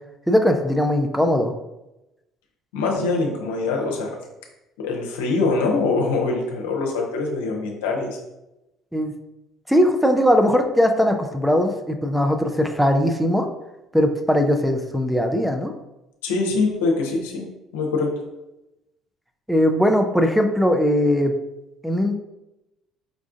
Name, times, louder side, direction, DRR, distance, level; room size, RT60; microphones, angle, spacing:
voice 1, 0.3-1.5 8.9-9.1 9.7-13.5 13.9-15.7 19.5-21.3 21.8-22.1, equal, ahead, 5 dB, 0.5 m, -19 dB
voice 2, 2.7-4.1 4.8-8.2 16.2-17.4 17.7-18.1, left 3 dB, 80° left, 0 dB, 0.7 m, -23 dB
5.0 x 2.4 x 2.4 m, 0.94 s
hypercardioid pair, 60°, 0 cm